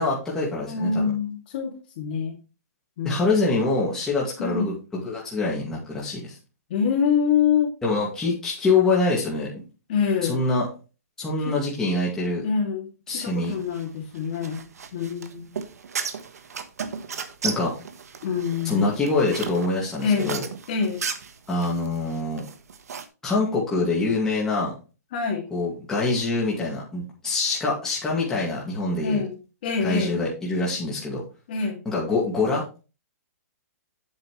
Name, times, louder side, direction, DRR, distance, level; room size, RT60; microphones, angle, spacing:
voice 1, 0.0-1.1 3.0-6.3 7.8-9.6 10.3-10.7 11.2-12.5 13.1-13.5 17.4-17.7 18.7-20.4 21.5-22.5 23.2-24.7 25.5-29.2 29.8-31.2 31.9-32.8, left 3 dB, 5° left, -6 dB, 2.2 m, -25 dB
voice 2, 0.6-2.4 3.0-3.6 4.4-4.7 6.7-7.7 9.9-10.4 11.5-11.6 12.4-14.6 14.9-15.6 18.2-18.9 20.0-20.4 20.7-21.0 25.1-25.5 29.0-29.3 29.6-30.2 31.5-31.8, left 6 dB, 35° left, 1 dB, 2.4 m, -25 dB
sound 1, 13.4-23.1, right 6 dB, 75° right, 1.3 m, -35 dB
8.3 x 8.0 x 3.2 m, 0.32 s
hypercardioid pair, 170°, 9 cm